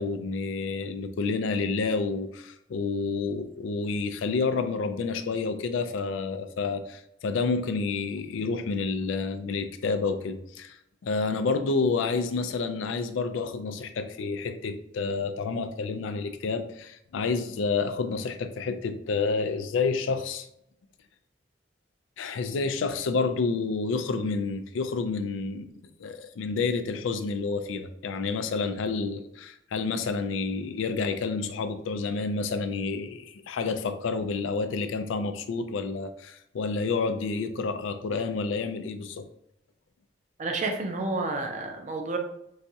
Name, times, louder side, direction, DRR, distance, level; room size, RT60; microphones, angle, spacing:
voice 1, 0.0-10.8 11.0-20.5 22.2-25.7 26.0-39.3, left 4 dB, 85° left, 9 dB, 0.4 m, -29 dB
voice 2, 40.4-42.2, right 3 dB, 40° right, 3 dB, 0.5 m, -30 dB
4.0 x 2.3 x 2.7 m, 0.78 s
head